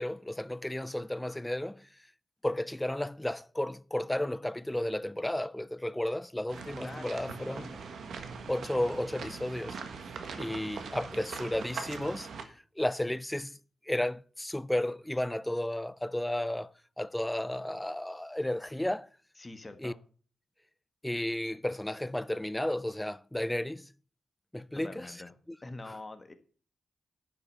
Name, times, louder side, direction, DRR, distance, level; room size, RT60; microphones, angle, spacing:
voice 1, 0.0-1.9 2.4-7.6 8.5-9.8 10.4-12.3 12.8-13.6 13.9-16.7 17.0-19.1 19.8-19.9 21.0-23.9 24.5-25.1, left 1 dB, 10° left, 0.4 m, -33 dB
sound 1, 6.5-12.4, right 5 dB, 80° right, 1.5 m, -42 dB
voice 2, 6.8-7.8 19.4-20.0 24.7-25.3 25.6-26.3, left 2 dB, 25° left, 1.6 m, -45 dB
11.0 x 5.8 x 7.0 m
cardioid pair, 90°, 0 cm